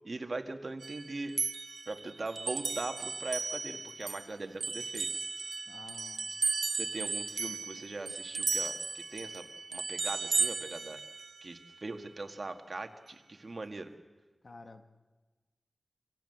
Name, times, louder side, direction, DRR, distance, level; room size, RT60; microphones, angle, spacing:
voice 1, 0.0-1.4 1.9-5.1 6.8-9.4 9.7-11.0 11.4-13.9, right 2 dB, 60° right, 6 dB, 1.7 m, -40 dB
sound 1, 0.8-4.3 4.6-11.5, right 4 dB, 85° right, 1.1 m, -35 dB
voice 2, 5.7-6.3 14.4-14.9, left 3 dB, 70° left, 7 dB, 1.5 m, -51 dB
25.5 x 16.5 x 7.9 m, 1.2 s
wide cardioid pair, 55°, 0 cm